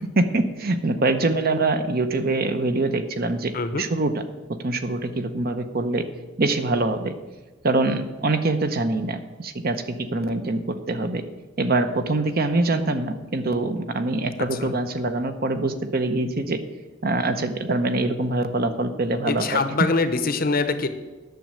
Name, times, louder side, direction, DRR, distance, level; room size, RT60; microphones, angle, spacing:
voice 1, 0.2-4.1 4.5-6.0 6.4-7.1 7.6-11.2 11.6-16.6 17.0-19.6, right 2 dB, 40° right, 9 dB, 0.7 m, -24 dB
voice 2, 3.5-3.8 14.5-14.7 19.3-20.9, left 3 dB, 40° left, 10 dB, 0.8 m, -24 dB
9.2 x 6.5 x 8.6 m, 1.3 s
head